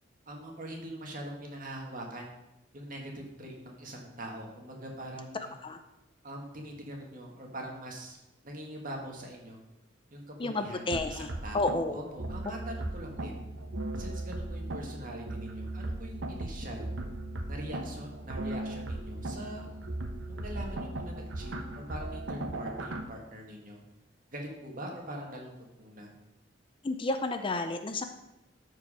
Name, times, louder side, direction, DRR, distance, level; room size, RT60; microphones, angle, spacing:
voice 1, 0.3-2.3 2.7-5.5 6.2-8.2 8.4-9.6 10.1-13.4 14.0-16.9 17.5-19.7 20.3-23.8 24.3-25.5 25.8-26.1, right 1 dB, 45° right, 0 dB, 1.9 m, -43 dB
voice 2, 10.4-11.3 11.5-12.0 26.8-28.0, left 2 dB, 30° left, 8 dB, 0.5 m, -31 dB
sound 1, 10.9-23.0, right 1 dB, 85° right, 0.9 m, -37 dB
13.0 x 4.8 x 5.0 m, 0.92 s
head